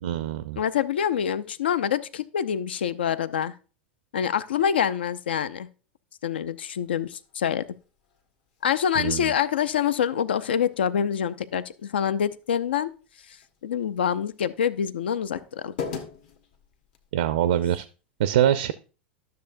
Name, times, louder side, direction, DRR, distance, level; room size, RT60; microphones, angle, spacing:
voice 1, 0.0-0.6 9.0-9.3 17.1-17.8 18.2-18.7, right 11 dB, 65° right, 0.4 m, -24 dB
voice 2, 0.6-3.5 4.1-5.7 6.2-7.6 8.6-12.9 13.6-15.7, left 8 dB, 70° left, 0.5 m, -26 dB
sound 1, 6.8-17.1, left 6 dB, 55° left, 1.3 m, -44 dB
12.0 x 6.7 x 2.6 m
figure-of-eight pair, 85°, 6 cm